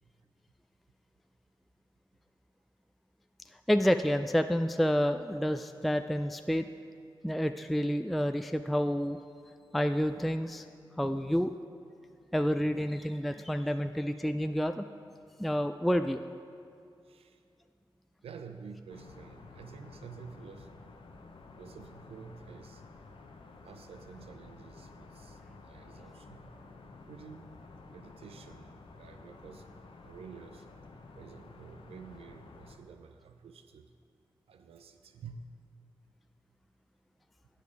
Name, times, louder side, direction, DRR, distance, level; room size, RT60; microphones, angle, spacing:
voice 1, 3.7-6.7 7.2-9.2 9.7-10.6 11.0-11.5 12.3-14.8 15.4-16.3, equal, ahead, 8 dB, 0.3 m, -29 dB
voice 2, 17.0-17.4 18.2-20.8 21.6-22.8 23.6-26.6 27.1-27.6 27.9-29.7 30.0-30.7 31.2-33.9 34.5-35.4, right 6 dB, 85° right, 8 dB, 0.4 m, -50 dB
sound 1, 18.9-32.8, left 3 dB, 65° left, 0.8 m, -52 dB
9.0 x 6.7 x 4.7 m, 2.5 s
cardioid pair, 50°, 10 cm